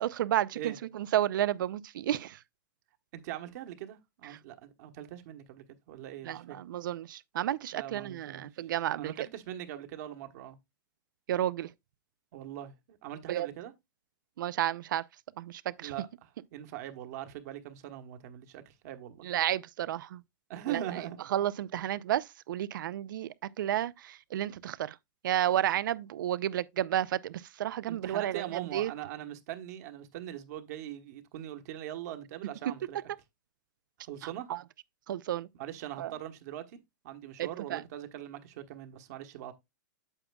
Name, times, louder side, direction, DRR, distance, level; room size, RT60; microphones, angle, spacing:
voice 1, 0.0-2.4 4.2-4.4 6.2-9.1 11.3-11.7 13.3-13.5 14.4-15.0 15.4-15.9 19.2-20.2 20.7-25.0 25.2-28.9 34.2-34.6 35.1-35.5 36.0-36.1 37.4-37.8, right 12 dB, 80° right, 0.5 m, -32 dB
voice 2, 3.1-6.6 7.7-8.5 9.0-10.6 12.3-13.7 15.8-16.1 16.5-19.3 20.5-21.2 21.7-21.9 27.9-33.0 34.0-34.5 35.6-36.8 37.0-39.5, right 12 dB, 55° right, 1.2 m, -41 dB
8.9 x 7.1 x 2.3 m
supercardioid pair, 150°, 11 cm